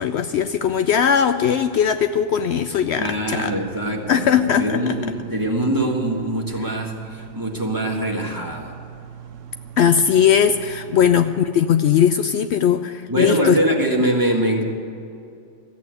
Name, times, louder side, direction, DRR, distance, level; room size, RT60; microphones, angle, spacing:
voice 1, 0.0-3.5 4.1-5.0 9.8-13.6, left 8 dB, 70° left, 9 dB, 0.8 m, -19 dB
voice 2, 3.0-8.7 10.9-11.0 13.1-14.6, right 1 dB, 15° right, -1 dB, 1.7 m, -23 dB
sound 1, 3.2-11.3, right 9 dB, 85° right, 1.0 m, -40 dB
14.0 x 8.5 x 9.6 m, 2.5 s
omnidirectional pair, 1.3 m